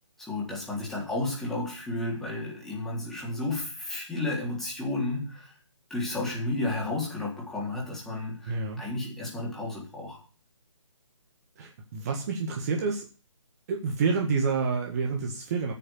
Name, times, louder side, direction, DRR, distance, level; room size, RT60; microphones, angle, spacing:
voice 1, 0.2-5.5 5.9-10.2, left 2 dB, ahead, -5 dB, 3.7 m, -32 dB
voice 2, 8.5-8.8 11.6-13.1 13.7-15.7, right 4 dB, 30° right, 1 dB, 1.8 m, -28 dB
9.1 x 6.8 x 8.6 m, 0.37 s
figure-of-eight pair, 145°, 16 cm